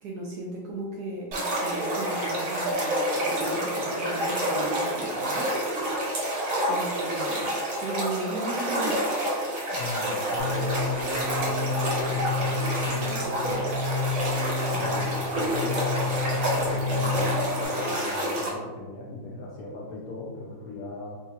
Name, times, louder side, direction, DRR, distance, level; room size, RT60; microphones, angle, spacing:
voice 1, 0.0-2.9 3.1-6.4 6.7-9.0, right 2 dB, 80° right, -2 dB, 0.9 m, -36 dB
sound 1, 1.3-18.5, right 1 dB, 65° right, 1.7 m, -28 dB
voice 2, 9.7-11.7 12.1-13.8 14.7-21.2, left 2 dB, 80° left, -5 dB, 0.8 m, -38 dB
sound 2, 10.4-17.7, left 4 dB, 55° left, 1.1 m, -30 dB
4.1 x 2.4 x 2.8 m, 1.3 s
omnidirectional pair, 2.2 m